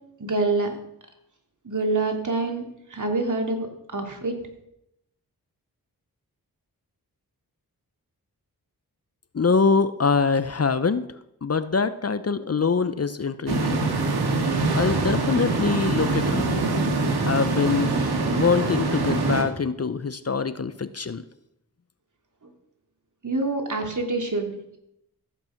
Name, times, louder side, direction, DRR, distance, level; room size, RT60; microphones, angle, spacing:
voice 1, 0.2-0.7 1.6-2.6 2.9-3.7 3.9-4.3 23.2-24.8, right 3 dB, 50° right, 3 dB, 3.1 m, -26 dB
voice 2, 9.3-11.1 11.4-13.8 14.7-16.4 17.3-17.9 18.3-21.2, left 5 dB, 40° left, 13 dB, 0.8 m, -24 dB
sound 1, 13.5-19.4, right 3 dB, 80° right, 2.2 m, -24 dB
14.5 x 8.8 x 6.0 m, 0.81 s
cardioid pair, 40°, 38 cm